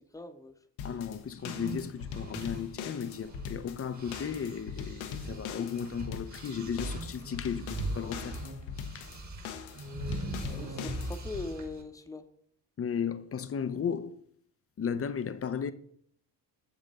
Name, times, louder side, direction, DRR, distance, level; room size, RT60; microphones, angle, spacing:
voice 1, 0.1-0.5 10.5-12.2, left 2 dB, 5° left, 0.9 m, -41 dB
sound 1, 0.8-11.5, left 7 dB, 75° left, 1.0 m, -41 dB
voice 2, 0.8-8.4 8.9-9.1 12.8-14.2 14.8-15.7, left 7 dB, 30° left, 0.7 m, -35 dB
sound 2, 1.3-3.6 3.9-11.8, right 1 dB, 35° right, 1.8 m, -40 dB
7.2 x 6.8 x 4.1 m
hypercardioid pair, 50°, 49 cm